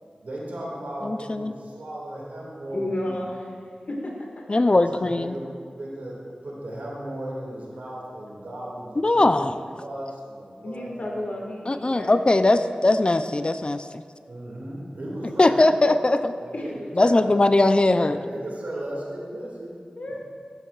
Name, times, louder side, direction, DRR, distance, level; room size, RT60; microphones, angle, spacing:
voice 1, 0.0-3.2 4.7-11.3 11.8-12.1 14.3-17.4 18.1-19.8, right 1 dB, 85° right, -4 dB, 2.0 m, -36 dB
voice 2, 1.0-1.5 4.5-5.3 9.0-9.5 11.7-13.8 15.4-16.3 17.0-18.2, left 2 dB, 40° left, 10 dB, 0.4 m, -20 dB
voice 3, 2.7-3.5 3.9-4.4 7.7-7.8 10.6-13.0 16.5-16.7 20.0-20.2, left 1 dB, 65° left, -1 dB, 1.7 m, -33 dB
12.5 x 8.4 x 2.4 m, 2.2 s
cardioid pair, 45°, 3 cm